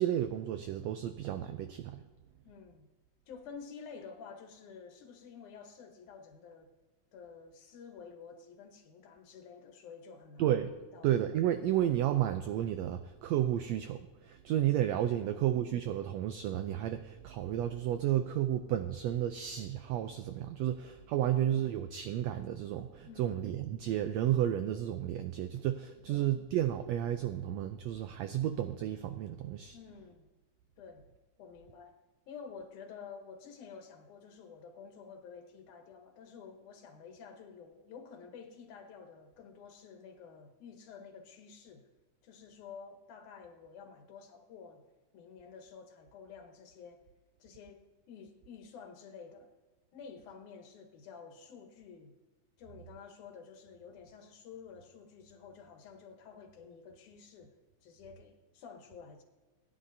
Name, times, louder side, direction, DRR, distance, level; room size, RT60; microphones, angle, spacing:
voice 1, 0.0-2.0 10.4-29.8, right 11 dB, 80° right, 8 dB, 1.5 m, -32 dB
voice 2, 2.4-2.9 3.3-6.7 7.1-10.5 10.9-11.1 15.2-15.4 21.2-21.8 23.0-23.5 26.1-26.3 29.7-30.3 30.8-31.0 31.4-31.9 32.3-41.9 42.2-44.8 45.1-47.0 47.4-49.5 49.9-52.1 52.6-57.6 57.8-59.2, left 6 dB, 75° left, 5 dB, 2.5 m, -51 dB
20.0 x 10.0 x 2.7 m, 1.3 s
omnidirectional pair, 3.5 m